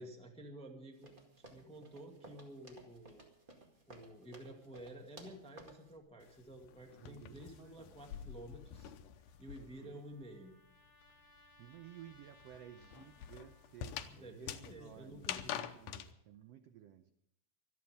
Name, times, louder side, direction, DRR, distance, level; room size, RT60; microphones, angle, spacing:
voice 1, 0.0-3.2 3.9-8.9 9.4-10.5 14.1-15.6, right 1 dB, 5° left, 2 dB, 1.0 m, -52 dB
sound 1, 1.0-5.9, right 2 dB, 20° right, 1.5 m, -57 dB
sound 2, 6.2-10.0 10.2-16.1, left 10 dB, 85° left, 2.4 m, -46 dB
voice 2, 7.0-8.3 9.6-10.1 11.1-11.3 11.6-17.1, right 10 dB, 80° right, 9 dB, 1.4 m, -56 dB
Trumpet, 9.3-14.1, left 1 dB, 35° left, 1.9 m, -66 dB
25.0 x 9.4 x 5.2 m, 0.74 s
omnidirectional pair, 3.7 m